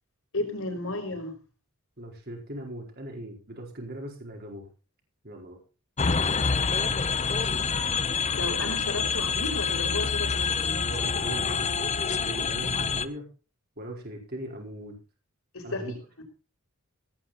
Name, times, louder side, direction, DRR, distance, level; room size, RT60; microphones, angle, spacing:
voice 1, 0.3-1.3 8.3-10.8 15.5-15.9, left 2 dB, 65° left, 4 dB, 5.5 m, -33 dB
voice 2, 2.0-4.7 5.2-5.6 10.8-13.2 13.8-15.0 15.6-16.0, right 1 dB, 45° right, 2 dB, 4.7 m, -39 dB
sound 1, 6.0-13.1, left 5 dB, 30° left, 0.8 m, -27 dB
17.5 x 9.7 x 4.3 m, 0.34 s
head